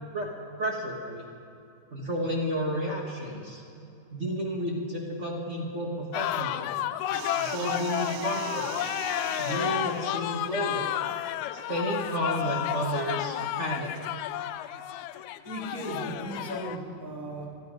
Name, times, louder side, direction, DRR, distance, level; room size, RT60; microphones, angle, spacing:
voice 1, 0.6-1.3 1.9-3.6 4.1-6.7 7.4-8.7 9.4-10.9 11.5-13.9, equal, 45° right, -2 dB, 0.9 m, -31 dB
sound 1, 6.1-16.8, left 12 dB, 80° left, 1.7 m, -32 dB
sound 2, 7.1-11.7 12.7-14.2, right 12 dB, 80° right, 1.5 m, -43 dB
voice 2, 15.4-17.5, right 1 dB, 10° right, -2 dB, 1.7 m, -36 dB
28.0 x 9.7 x 5.2 m, 2.6 s
omnidirectional pair, 3.7 m